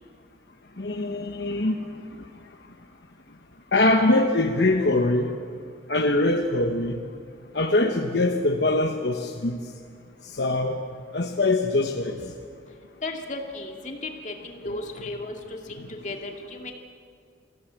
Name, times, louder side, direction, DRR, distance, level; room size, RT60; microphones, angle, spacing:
voice 1, 0.8-1.8 3.7-5.3 5.9-7.0 7.5-9.6 10.3-10.8 11.1-12.2 14.7-14.8, left 2 dB, 65° left, 3 dB, 1.1 m, -23 dB
voice 2, 13.0-16.7, left 2 dB, 40° left, 2 dB, 2.3 m, -35 dB
24.5 x 15.5 x 8.8 m, 2.2 s
head